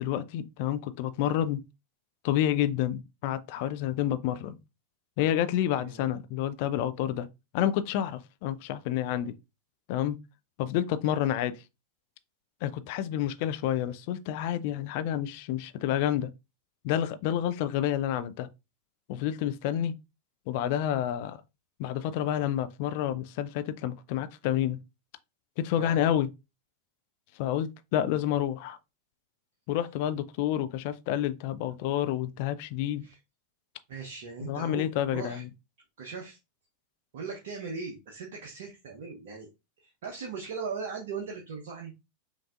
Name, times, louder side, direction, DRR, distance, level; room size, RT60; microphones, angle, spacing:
voice 1, 0.0-1.6 2.2-4.6 5.2-7.3 7.5-9.3 9.9-10.2 10.6-11.5 12.6-16.3 16.8-18.5 19.1-19.9 20.5-21.4 21.8-24.8 25.6-26.3 27.4-28.8 29.7-33.0 34.4-35.5, left 11 dB, 45° left, 0.4 m, -29 dB
voice 2, 33.9-35.4 36.0-36.4 37.1-39.5 39.8-42.0, right 5 dB, 55° right, 0.8 m, -39 dB
5.5 x 2.6 x 2.4 m
figure-of-eight pair, 90°, 0 cm